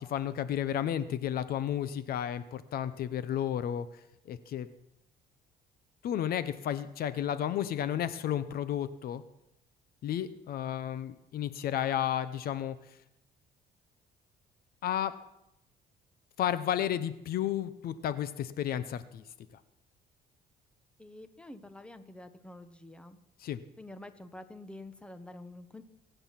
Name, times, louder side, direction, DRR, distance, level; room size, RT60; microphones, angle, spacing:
voice 1, 0.0-3.9 4.3-4.7 6.0-9.2 10.0-12.8 14.8-15.1 16.4-19.2 23.4-23.6, left 10 dB, 65° left, 13 dB, 0.9 m, -32 dB
voice 2, 21.0-23.2 23.8-25.8, left 1 dB, 5° left, 10 dB, 1.2 m, -48 dB
23.5 x 9.2 x 5.9 m, 0.82 s
cardioid pair, 110°, 17 cm